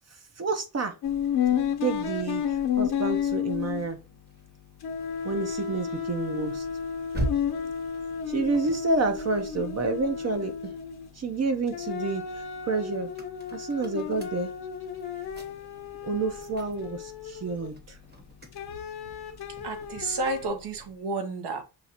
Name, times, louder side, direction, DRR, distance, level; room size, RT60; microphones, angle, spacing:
voice 1, 0.4-0.9 1.8-4.0 5.2-6.7 8.3-10.7 11.2-12.2 12.7-13.1 13.5-14.5 16.0-18.0, right 3 dB, 40° right, 0.7 m, -29 dB
sound 1, 1.0-4.5 4.8-11.2 11.7-17.9 18.5-20.5, left 8 dB, 65° left, 1.0 m, -32 dB
sound 2, 4.3-10.8 11.2-21.0, right 1 dB, 25° right, 1.0 m, -42 dB
voice 2, 19.6-21.6, right 3 dB, 75° right, 1.0 m, -31 dB
5.7 x 2.4 x 2.8 m
cardioid pair, 85°, 40 cm